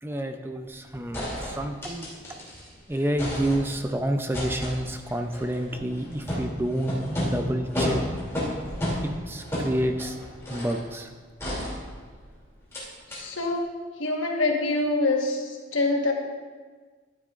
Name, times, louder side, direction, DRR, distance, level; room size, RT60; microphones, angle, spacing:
voice 1, 0.0-2.5 2.9-8.0 9.0-10.2 10.5-11.1, right 1 dB, 10° right, 6 dB, 0.4 m, -29 dB
sound 1, 0.7-0.8 1.1-2.7 3.0-3.9 4.3-10.9 11.4-12.3 12.7-12.8 13.1-13.2, left 1 dB, 15° left, 2.6 m, -32 dB
voice 2, 13.1-13.6 14.0-15.4 15.7-16.1, left 2 dB, 85° left, 1 dB, 1.3 m, -25 dB
13.0 x 9.5 x 2.4 m, 1.5 s
head